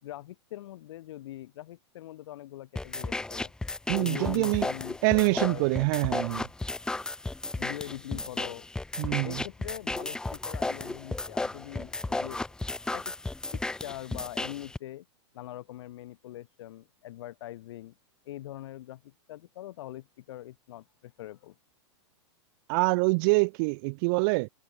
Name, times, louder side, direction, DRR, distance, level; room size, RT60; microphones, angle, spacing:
voice 1, 0.0-3.5 4.0-5.0 5.3-5.9 7.5-8.7 9.2-12.4 12.9-13.1 13.5-15.1 15.3-17.9 18.3-21.5, left 14 dB, 65° left, 6.9 m, -42 dB
sound 1, 2.8-14.8, left 2 dB, 5° left, 0.7 m, -34 dB
voice 2, 3.9-4.7 5.0-6.5 9.0-9.4 22.7-24.5, right 31 dB, 45° right, 0.8 m, -25 dB
hypercardioid pair, 140°, 15 cm